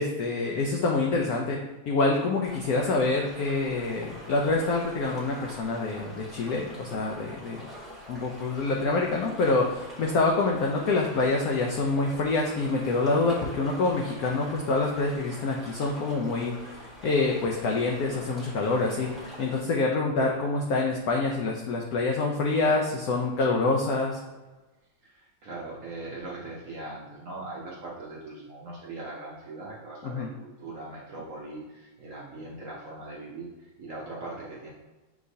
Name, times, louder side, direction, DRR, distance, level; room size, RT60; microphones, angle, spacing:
voice 1, 0.0-1.6 1.9-7.6 8.1-24.2 30.0-30.3, left 3 dB, 90° left, 0 dB, 0.8 m, -26 dB
sound 1, 2.4-19.6, equal, ahead, 0.8 m, -45 dB
voice 2, 25.0-34.7, right 2 dB, 65° right, -4 dB, 0.8 m, -40 dB
5.8 x 3.1 x 2.6 m, 1.2 s
omnidirectional pair, 2.1 m